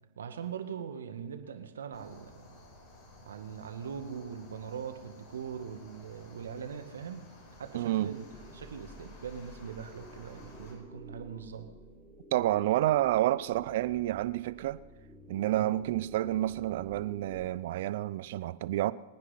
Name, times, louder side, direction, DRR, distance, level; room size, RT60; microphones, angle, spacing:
voice 1, 0.2-2.7 3.2-8.3 8.5-11.7 15.5-15.7, right 7 dB, 75° right, 1.9 m, -41 dB
sound 1, 1.9-10.7, left 2 dB, 45° left, 7.3 m, -54 dB
voice 2, 7.7-8.1 12.3-14.8 15.3-18.9, right 14 dB, 60° right, 0.6 m, -29 dB
sound 2, 8.3-17.5, right 1 dB, 5° left, 4.5 m, -52 dB
24.5 x 9.9 x 5.8 m
hypercardioid pair, 105°, 0 cm